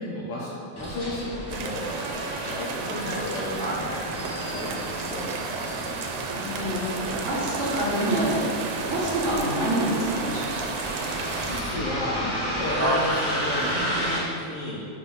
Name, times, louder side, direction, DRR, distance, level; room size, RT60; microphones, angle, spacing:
voice 1, 0.1-1.9 2.4-5.3 11.4-14.9, left 1 dB, 70° left, -5 dB, 1.5 m, -33 dB
Bus, 0.8-14.2, equal, 40° left, 0.3 m, -32 dB
sound 1, 1.5-11.6, right 5 dB, 90° right, 2.0 m, -33 dB
voice 2, 6.1-8.4 8.9-10.6, right 1 dB, 55° right, -7 dB, 1.7 m, -27 dB
5.3 x 4.8 x 5.3 m, 2.6 s
omnidirectional pair, 3.3 m